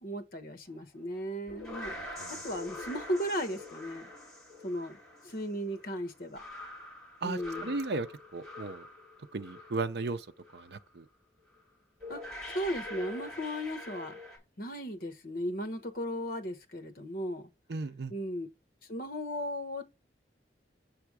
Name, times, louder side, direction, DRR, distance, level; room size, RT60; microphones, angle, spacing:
voice 1, 0.0-1.9 2.3-4.1 4.6-5.0 5.2-6.4 7.2-7.8 12.1-12.2 12.5-14.2 14.6-17.5 18.1-18.5 18.9-19.9, equal, 55° left, 1.1 m, -36 dB
sound 1, 1.2-10.1 10.4-10.8 11.6-11.7 12.0-14.4, left 2 dB, 5° left, 2.6 m, -44 dB
voice 2, 1.9-2.3 7.2-8.9 9.3-10.3 10.5-11.1 17.7-18.1, right 3 dB, 65° right, 0.6 m, -36 dB
7.2 x 3.4 x 4.8 m
head